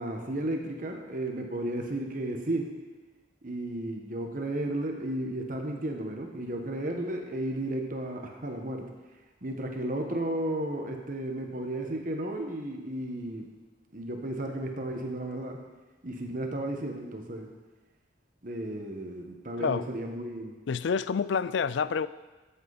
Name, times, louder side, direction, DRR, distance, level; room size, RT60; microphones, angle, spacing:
voice 1, 0.0-2.7 3.4-8.9 9.4-13.5 13.9-15.6 16.0-17.5 18.4-20.6, right 1 dB, 45° right, 3 dB, 1.3 m, -33 dB
voice 2, 20.7-22.1, left 6 dB, 70° left, 16 dB, 0.4 m, -28 dB
13.5 x 8.2 x 4.1 m, 1.2 s
head